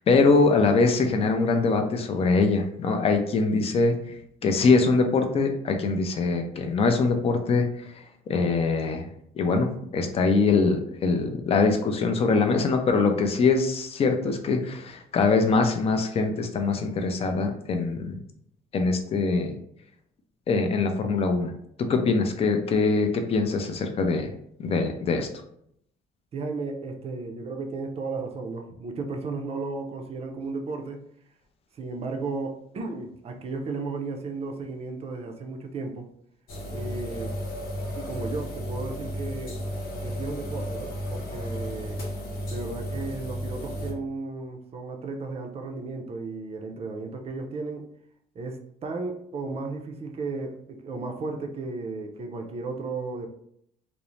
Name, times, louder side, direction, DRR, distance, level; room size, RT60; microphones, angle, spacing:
voice 1, 0.0-4.1 4.4-7.9 8.3-9.1 9.3-18.2 18.7-19.6 20.5-21.5 21.8-24.3 24.6-25.3, left 4 dB, 35° left, 5 dB, 0.5 m, -23 dB
voice 2, 26.3-31.1 31.7-36.1 36.7-37.4 37.9-39.6 40.0-42.0 42.5-47.9 48.3-53.3, right 3 dB, 35° right, 4 dB, 0.5 m, -34 dB
sound 1, 36.5-43.9, equal, 65° left, 0.9 m, -33 dB
2.5 x 2.0 x 3.0 m, 0.70 s
cardioid pair, 110°, 17 cm